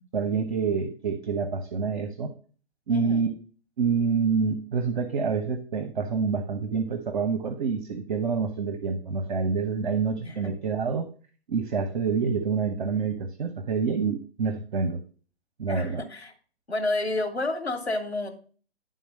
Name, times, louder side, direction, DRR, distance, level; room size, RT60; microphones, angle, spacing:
voice 1, 0.1-2.3 2.9-3.3 3.8-11.1 11.5-15.0 15.6-16.0, right 5 dB, 50° right, 8 dB, 0.9 m, -27 dB
voice 2, 2.9-3.2 10.2-10.5 15.7-16.3 16.7-18.3, left 2 dB, 75° left, 2 dB, 2.0 m, -30 dB
11.0 x 3.9 x 5.3 m, 0.41 s
figure-of-eight pair, 125°, 32 cm